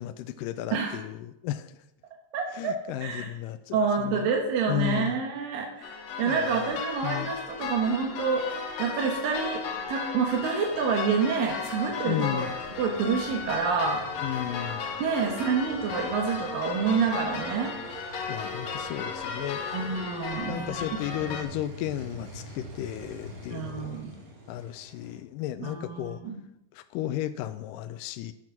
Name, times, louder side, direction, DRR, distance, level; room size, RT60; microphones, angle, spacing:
voice 1, 0.0-1.8 2.5-4.3 4.7-5.2 6.2-7.3 12.1-12.6 14.2-14.8 18.3-19.6 20.5-24.0 24.5-26.2 26.7-28.3, left 12 dB, 80° left, 10 dB, 2.1 m, -34 dB
voice 2, 0.7-1.0 2.3-3.3 3.7-8.5 8.8-9.6 9.9-12.5 12.8-14.3 15.0-17.7 19.7-21.3 23.5-24.1 25.6-26.4, right 5 dB, 90° right, 1 dB, 3.0 m, -28 dB
sound 1, 5.8-21.4, left 5 dB, 60° left, 2.1 m, -35 dB
sound 2, 10.6-25.2, right 1 dB, 40° right, 2.7 m, -45 dB
10.5 x 7.5 x 5.9 m, 0.86 s
omnidirectional pair, 3.9 m